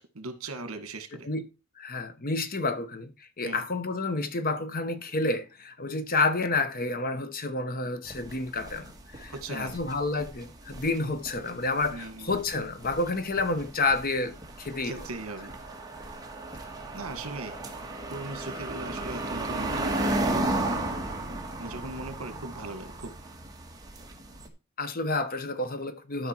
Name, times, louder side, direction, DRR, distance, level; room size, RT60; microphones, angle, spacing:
voice 1, 0.0-1.3 3.4-3.6 9.3-9.8 11.9-12.4 14.8-15.5 16.9-17.5 18.1-20.5 21.6-23.1, right 2 dB, 70° right, 1.6 m, -38 dB
voice 2, 1.8-14.9 24.8-26.3, left 3 dB, 40° left, 1.0 m, -30 dB
sound 1, 8.1-24.5, right 2 dB, 15° right, 1.5 m, -35 dB
12.5 x 5.2 x 4.4 m
head